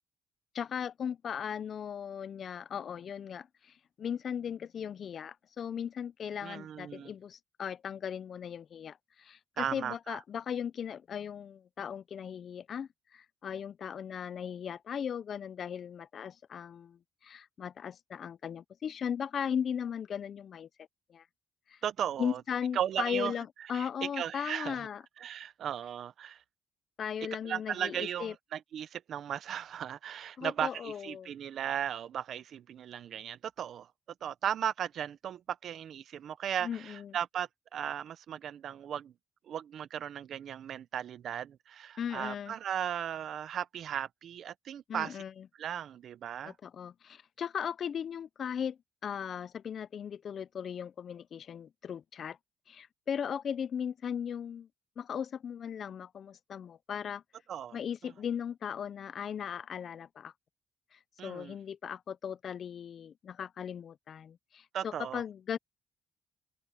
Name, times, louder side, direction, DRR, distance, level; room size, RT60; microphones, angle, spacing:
voice 1, 0.5-20.7 21.1-21.3 21.7-21.8 22.2-25.0 27.0-28.3 30.4-31.3 36.6-37.2 42.0-42.5 44.9-45.4 46.4-52.4 52.7-54.7 55.0-57.2 57.7-60.3 60.9-65.6, left 8 dB, 55° left, 0.5 m, -37 dB
voice 2, 6.4-7.1 9.6-10.2 21.8-22.4 22.7-23.3 23.7-24.9 25.2-26.4 27.4-33.9 34.2-39.1 39.5-45.2 45.5-46.5 57.5-57.8 61.2-61.6 64.7-65.2, right 9 dB, 65° right, 0.7 m, -36 dB
cardioid pair, 90°, 0 cm